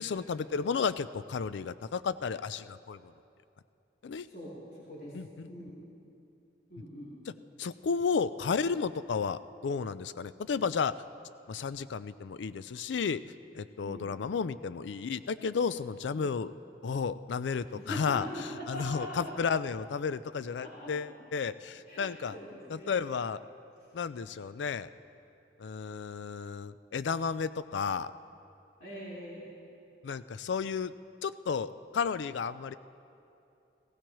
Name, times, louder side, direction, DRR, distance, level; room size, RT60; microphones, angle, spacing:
voice 1, 0.0-3.1 4.0-4.3 5.1-5.5 7.6-10.9 11.5-13.2 13.5-16.5 16.8-18.3 18.7-22.3 22.7-23.4 23.9-24.9 25.6-28.1 30.0-30.9 31.2-32.8, left 5 dB, 85° left, 14 dB, 0.4 m, -32 dB
voice 2, 4.2-5.1 5.5-5.7 6.7-7.1 13.8-14.0 17.7-19.3 20.6-21.1 21.9-22.9 28.8-29.5, equal, 55° left, -8 dB, 3.3 m, -42 dB
20.5 x 16.5 x 3.1 m, 2.7 s
head